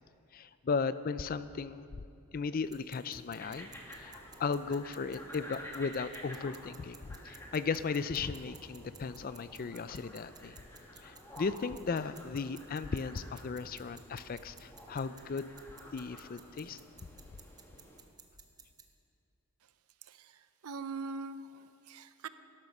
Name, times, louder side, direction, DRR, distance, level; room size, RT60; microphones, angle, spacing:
voice 1, 0.3-1.9 2.3-3.7 4.0-10.6 11.0-15.5 15.9-16.8, left 5 dB, 40° left, 14 dB, 0.4 m, -36 dB
sound 1, 2.6-18.9, right 6 dB, 15° right, 0.8 m, -58 dB
sound 2, 3.4-18.0, equal, 10° left, 1.7 m, -51 dB
voice 2, 20.0-22.3, right 4 dB, 75° right, 12 dB, 0.6 m, -43 dB
13.5 x 12.0 x 6.0 m, 2.6 s
head